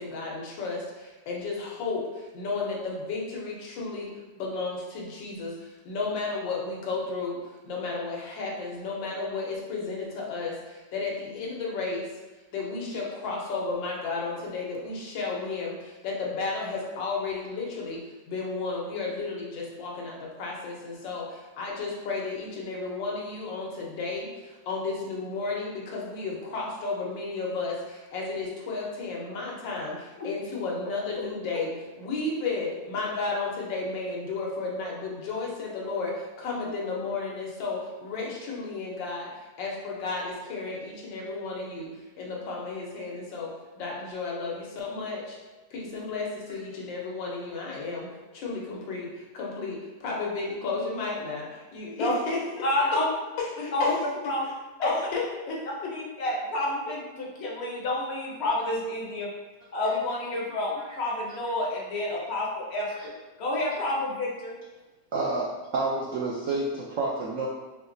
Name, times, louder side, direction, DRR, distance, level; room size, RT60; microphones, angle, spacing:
voice 1, 0.0-12.2 12.5-45.4 45.7-52.4 52.7-52.8 53.4-53.9 54.4-54.5 54.8-55.9, left 3 dB, 90° left, -3 dB, 1.6 m, -33 dB
voice 2, 52.6-53.0 53.7-54.0 54.2-54.4 54.8-54.9 55.9-59.3 59.7-63.1 63.4-64.5, left 1 dB, 55° left, -3 dB, 0.7 m, -29 dB
voice 3, 65.1-67.5, right 3 dB, 85° right, -3 dB, 0.6 m, -29 dB
4.8 x 2.8 x 2.6 m, 1.2 s
omnidirectional pair, 2.0 m